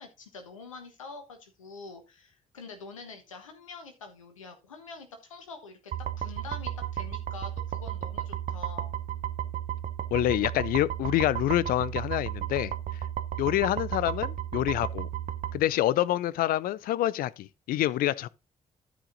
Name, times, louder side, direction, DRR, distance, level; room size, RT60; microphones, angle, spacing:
voice 1, 0.0-5.9 6.2-8.9, left 4 dB, 90° left, 1.3 m, -45 dB
sound 1, 5.9-15.6, right 11 dB, 50° right, 0.9 m, -34 dB
voice 2, 10.1-12.7 13.4-15.1 15.5-18.3, left 14 dB, 65° left, 0.5 m, -27 dB
12.5 x 5.1 x 3.9 m
hypercardioid pair, 40°, 16 cm